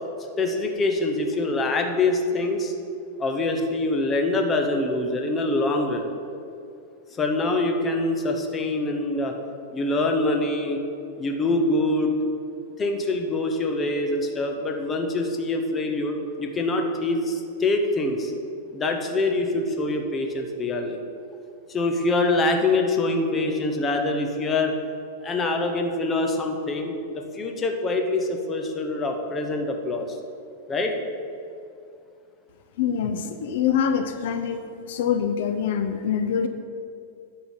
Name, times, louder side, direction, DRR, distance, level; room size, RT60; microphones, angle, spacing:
voice 1, 0.4-2.7 3.2-6.1 7.2-9.3 9.7-10.8 11.2-12.1 12.8-18.3 18.7-21.0 21.7-24.8 25.2-30.1 30.7-30.9, left 2 dB, 15° left, 3 dB, 0.8 m, -24 dB
voice 2, 32.8-34.6 34.9-36.5, left 7 dB, 60° left, 8 dB, 0.5 m, -24 dB
10.5 x 3.8 x 7.2 m, 2.5 s
supercardioid pair, 160°, 0 cm